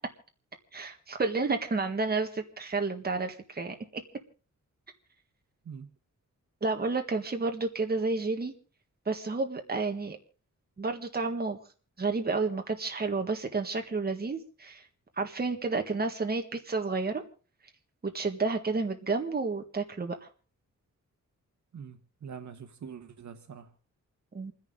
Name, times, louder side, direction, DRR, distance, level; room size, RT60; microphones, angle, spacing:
voice 1, 0.7-4.0 6.6-8.5 9.1-10.2 10.8-11.6 12.0-14.8 15.2-17.2 18.0-20.2 24.3-24.5, right 3 dB, 30° right, 1.7 m, -30 dB
voice 2, 21.7-23.7, right 7 dB, 65° right, 1.3 m, -44 dB
28.5 x 10.5 x 3.8 m
wide cardioid pair, 165°, 31 cm